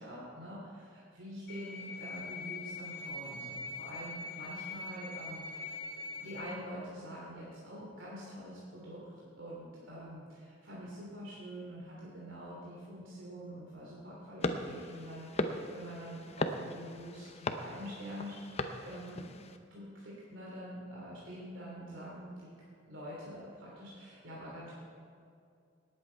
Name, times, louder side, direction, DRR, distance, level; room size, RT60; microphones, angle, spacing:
voice 1, 0.0-5.9 6.2-9.0 9.3-18.4 18.6-19.3 19.7-22.5 22.8-24.7, equal, 85° right, -6 dB, 2.9 m, -46 dB
sound 1, 1.5-6.5, left 3 dB, 50° left, 1.6 m, -43 dB
sound 2, 14.4-19.6, left 2 dB, 35° left, 0.7 m, -38 dB
18.5 x 8.7 x 4.6 m, 2.4 s
head